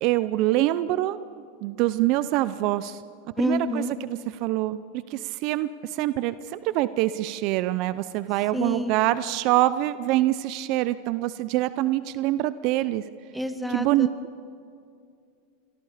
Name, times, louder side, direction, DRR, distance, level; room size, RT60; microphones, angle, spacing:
voice 1, 0.0-1.2 1.6-3.0 3.4-4.8 5.1-13.0 13.7-14.1, right 15 dB, 55° right, 15 dB, 0.6 m, -25 dB
voice 2, 3.4-3.9 8.5-9.0 13.3-14.1, equal, ahead, 8 dB, 1.6 m, -28 dB
27.5 x 22.0 x 5.1 m, 2.3 s
supercardioid pair, 120°, 0 cm